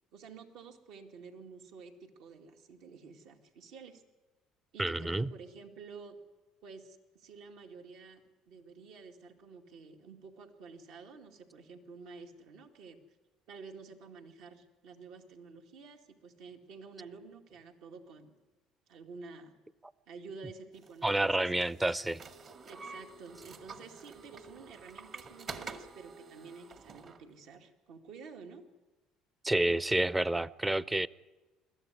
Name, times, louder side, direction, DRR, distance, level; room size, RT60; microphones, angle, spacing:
voice 1, 0.1-4.0 4.7-6.2 6.6-13.0 13.5-18.3 18.9-19.5 20.1-21.5 22.6-28.6, right 4 dB, 75° right, 2.3 m, -50 dB
voice 2, 4.8-5.3 21.0-22.2 29.4-31.1, right 1 dB, 10° right, 0.6 m, -29 dB
sound 1, 20.8-27.2, right 4 dB, 50° right, 1.9 m, -48 dB
21.5 x 14.0 x 9.7 m
supercardioid pair, 90°, 0 cm